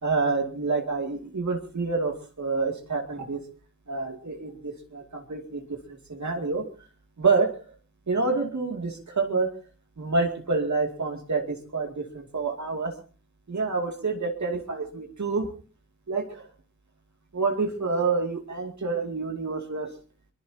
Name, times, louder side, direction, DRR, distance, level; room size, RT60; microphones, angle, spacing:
voice 1, 0.0-3.4 3.9-6.6 7.2-7.5 8.1-9.5 10.0-12.9 13.5-15.5 16.1-16.4 17.3-19.9, right 4 dB, 65° right, 2 dB, 2.6 m, -28 dB
23.0 x 21.5 x 2.9 m, 0.39 s
wide cardioid pair, 70°, 30 cm